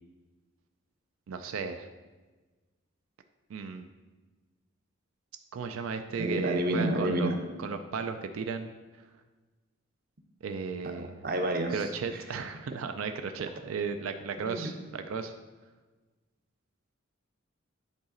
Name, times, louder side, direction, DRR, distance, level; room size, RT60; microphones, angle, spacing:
voice 1, 1.3-1.9 3.5-3.9 5.5-7.3 7.6-8.7 10.4-11.1 11.7-15.3, right 5 dB, 90° right, 7 dB, 0.4 m, -35 dB
voice 2, 6.2-7.4 11.2-11.9 14.4-14.7, right 1 dB, 45° right, 4 dB, 0.7 m, -29 dB
9.7 x 4.0 x 3.8 m, 1.3 s
head